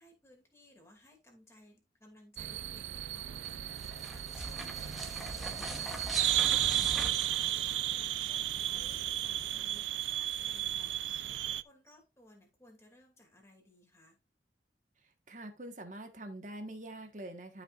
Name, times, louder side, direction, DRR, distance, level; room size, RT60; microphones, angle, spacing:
voice 1, 0.0-3.6 4.1-6.7 7.4-11.2 11.6-14.2, left 1 dB, 15° left, 1 dB, 2.4 m, -60 dB
sound 1, 2.4-11.6, right 12 dB, 90° right, 0.4 m, -34 dB
sound 2, 3.3-8.3, equal, ahead, 1.1 m, -42 dB
Bird, 7.4-7.7 8.2-8.3 9.0-9.1 10.0-10.2 11.1-11.2 11.9-12.0, right 4 dB, 25° right, 2.2 m, -64 dB
voice 2, 15.3-17.6, right 1 dB, 45° right, 5 dB, 1.4 m, -44 dB
12.5 x 5.3 x 2.5 m, 0.25 s
head